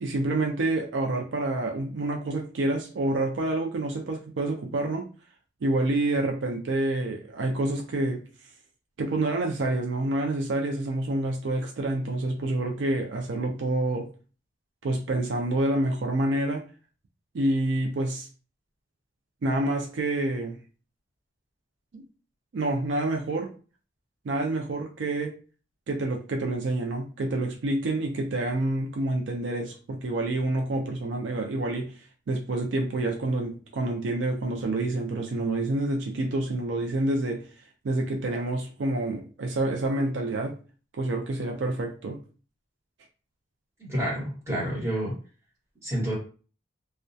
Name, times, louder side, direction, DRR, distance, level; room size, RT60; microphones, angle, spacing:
voice 1, 0.0-5.1 5.6-8.2 9.0-14.1 14.8-16.6 17.3-18.3 19.4-20.6 21.9-22.0 22.5-23.5 24.2-25.3 25.9-32.0 32.3-37.5 37.8-40.6 41.0-42.2, right 2 dB, 75° right, 2 dB, 0.4 m, -28 dB
voice 2, 43.8-45.1 45.8-46.1, equal, 15° right, -6 dB, 1.2 m, -29 dB
2.2 x 2.1 x 2.6 m, 0.37 s
head